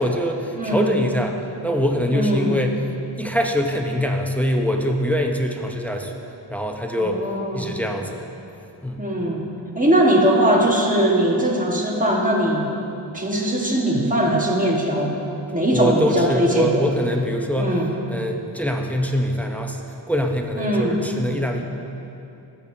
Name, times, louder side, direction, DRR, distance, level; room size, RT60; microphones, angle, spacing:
voice 1, 0.0-2.8 3.2-6.2 6.5-7.2 7.5-8.2 8.8-9.0 13.9-14.1 15.7-17.8 18.1-19.8 20.1-21.6, equal, 5° left, 2 dB, 0.7 m, -23 dB
voice 2, 0.6-0.9 2.1-2.6 7.0-7.8 9.0-9.4 9.7-12.7 13.1-15.2 15.5-16.8 17.6-17.9 20.6-21.0, right 1 dB, 20° right, -1 dB, 1.5 m, -20 dB
15.0 x 6.9 x 2.8 m, 2.8 s
wide cardioid pair, 60°, 44 cm